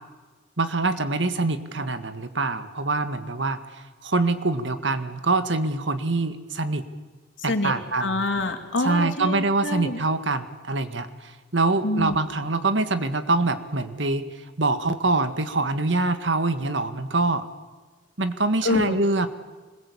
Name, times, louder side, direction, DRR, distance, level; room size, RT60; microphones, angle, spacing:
voice 1, 0.6-6.8 7.4-8.2 8.8-14.2 14.6-17.5 18.2-19.3, right 3 dB, 70° right, 9 dB, 1.9 m, -25 dB
voice 2, 7.4-10.0 11.8-12.2 18.6-19.0, left 2 dB, 85° left, 4 dB, 2.9 m, -26 dB
26.0 x 21.0 x 8.7 m, 1.3 s
head